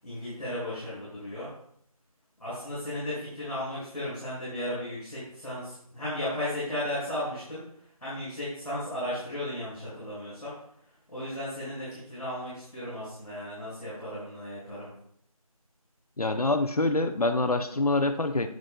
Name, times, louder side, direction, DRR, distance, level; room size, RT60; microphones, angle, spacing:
voice 1, 0.0-1.5 2.4-7.6 8.0-10.5 11.1-14.9, left 1 dB, ahead, -30 dB, 3.5 m, -35 dB
voice 2, 16.2-18.5, left 2 dB, 80° left, 7 dB, 0.8 m, -25 dB
9.6 x 9.1 x 2.3 m, 0.69 s
figure-of-eight pair, 175°, 19 cm